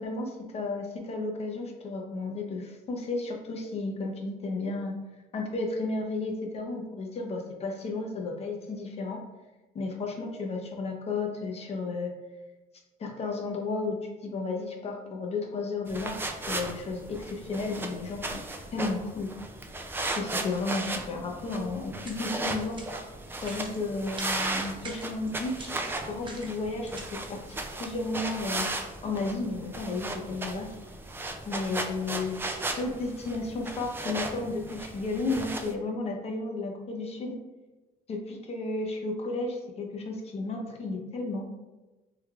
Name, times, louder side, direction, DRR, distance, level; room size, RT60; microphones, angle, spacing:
voice 1, 0.0-4.9 5.3-9.2 9.7-12.1 13.0-13.9 14.2-18.2 18.7-19.3 20.1-22.8 23.4-25.7 26.0-27.0 27.3-28.7 29.0-30.7 31.5-32.4 32.7-37.4 38.1-41.5, left 3 dB, 40° left, 1 dB, 0.6 m, -33 dB
sound 1, 15.9-35.7, right 2 dB, 15° right, 0.3 m, -36 dB
sound 2, 22.0-22.2 22.7-23.0 23.3-23.8 24.1-24.4 24.8-27.0, right 2 dB, 30° right, 0.7 m, -43 dB
3.2 x 3.2 x 2.4 m, 1.1 s
cardioid pair, 110°, 17 cm